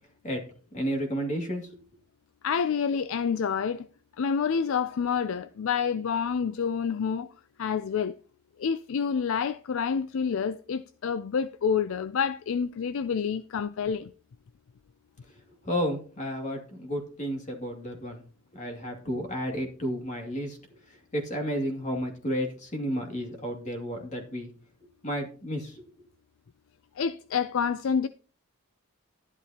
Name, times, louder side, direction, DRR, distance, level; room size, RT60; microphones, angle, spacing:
voice 1, 0.7-1.7 15.6-18.2 18.5-20.6 20.9-24.5 25.0-25.8, equal, 35° left, 2.4 m, -32 dB
voice 2, 2.4-3.9 4.2-7.3 7.6-8.2 8.6-14.1 27.0-28.1, left 6 dB, 60° left, 0.4 m, -28 dB
12.0 x 11.0 x 2.9 m
head